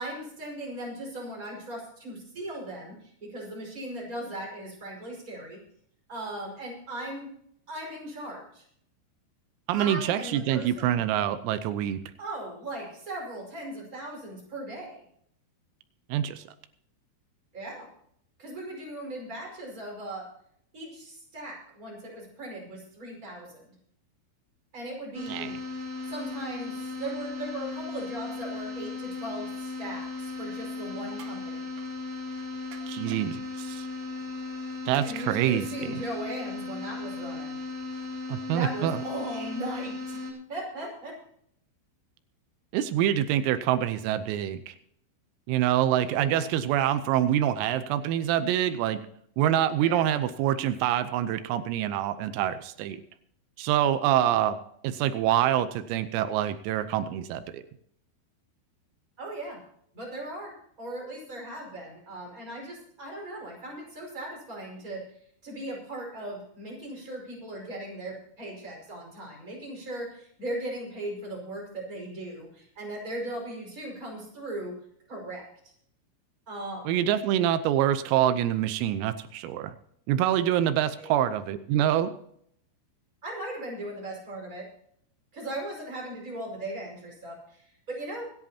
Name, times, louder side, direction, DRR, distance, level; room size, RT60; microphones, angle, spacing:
voice 1, 0.0-5.6 6.1-7.3 7.7-8.6 9.7-11.0 12.2-15.0 17.5-17.9 18.4-20.3 20.7-23.7 24.7-25.5 26.1-31.7 35.0-37.6 38.5-40.2 40.5-41.2 46.1-46.5 49.8-50.1 59.2-59.6 59.9-65.0 65.4-74.7 75.1-75.5 76.5-77.0 81.0-81.1 83.2-84.7 85.3-88.3, right 1 dB, 15° right, -1 dB, 5.1 m, -38 dB
voice 2, 9.7-12.0 16.1-16.4 25.3-25.5 32.9-33.9 34.9-35.9 38.3-39.0 42.7-44.7 45.5-49.0 49.4-53.0 53.6-54.6 54.8-57.6 76.9-79.7 80.1-82.1, right 11 dB, 85° right, 11 dB, 3.5 m, -26 dB
sound 1, 25.1-40.3, left 3 dB, 35° right, 3.9 m, -36 dB
sound 2, 31.1-31.4 31.8-31.9 32.7-33.3 34.9-35.1 36.0-36.1, right 5 dB, 60° right, 2.6 m, -49 dB
25.5 x 11.0 x 2.8 m, 0.68 s
omnidirectional pair, 5.9 m